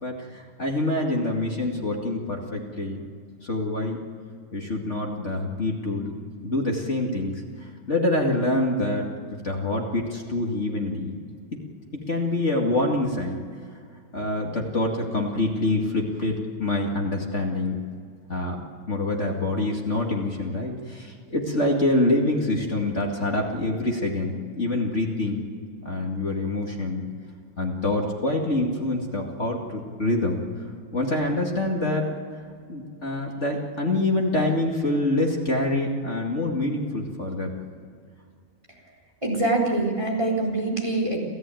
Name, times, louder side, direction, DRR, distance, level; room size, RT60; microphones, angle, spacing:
voice 1, 0.0-3.0 3.4-4.0 4.5-6.1 6.4-7.4 7.9-9.1 9.4-11.1 12.1-13.4 14.1-17.8 18.3-18.6 18.9-25.4 25.8-27.0 27.6-30.4 30.9-32.1 32.7-37.5, left 2 dB, 25° left, 0 dB, 1.5 m, -26 dB
voice 2, 39.2-41.2, right 2 dB, 10° right, -1 dB, 3.2 m, -24 dB
29.0 x 14.5 x 9.2 m, 2.1 s
omnidirectional pair, 4.5 m